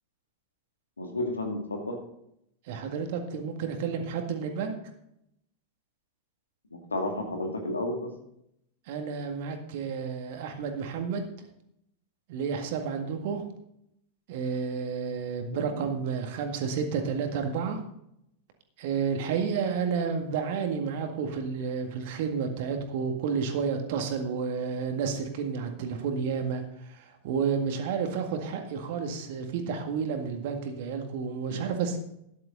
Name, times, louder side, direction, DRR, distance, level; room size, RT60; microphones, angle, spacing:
voice 1, 1.0-2.0 6.9-8.1 15.7-15.9 31.5-31.7, left 1 dB, 75° left, 3 dB, 2.2 m, -32 dB
voice 2, 2.7-4.8 8.9-11.2 12.3-13.4 14.3-17.8 18.8-32.0, right 6 dB, 50° right, 5 dB, 1.9 m, -31 dB
13.0 x 10.5 x 3.9 m, 0.77 s
figure-of-eight pair, 90°, 0 cm